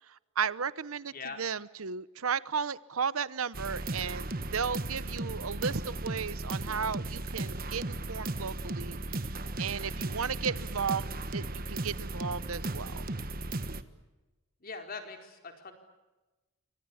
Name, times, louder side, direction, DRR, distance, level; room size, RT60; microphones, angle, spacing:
voice 1, 0.1-9.3 9.6-13.0, right 6 dB, 80° right, 18 dB, 0.9 m, -34 dB
voice 2, 1.1-1.4 14.6-15.7, left 4 dB, 45° left, 5 dB, 4.4 m, -42 dB
sound 1, 3.5-13.8, right 2 dB, 45° right, 1.4 m, -36 dB
29.5 x 25.0 x 7.2 m, 1.1 s
head